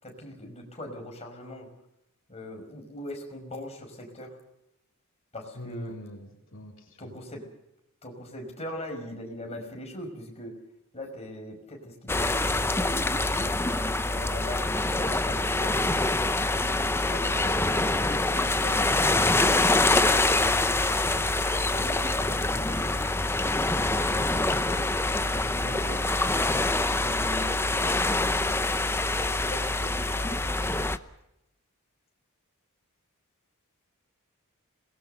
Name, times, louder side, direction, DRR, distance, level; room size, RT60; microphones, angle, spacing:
voice 1, 0.0-1.7 2.3-4.4 5.3-5.9 7.0-7.5 8.0-10.6 10.9-13.5 14.0-15.9 16.4-17.7 18.1-19.6 20.0-23.1 23.6-26.1 27.0-28.2 29.0-30.7, left 1 dB, 30° left, 1 dB, 5.6 m, -41 dB
voice 2, 5.5-7.1, equal, 60° left, 1 dB, 3.8 m, -43 dB
sound 1, 12.1-31.0, left 2 dB, 10° left, 0.8 m, -25 dB
26.5 x 19.5 x 6.7 m, 0.87 s
head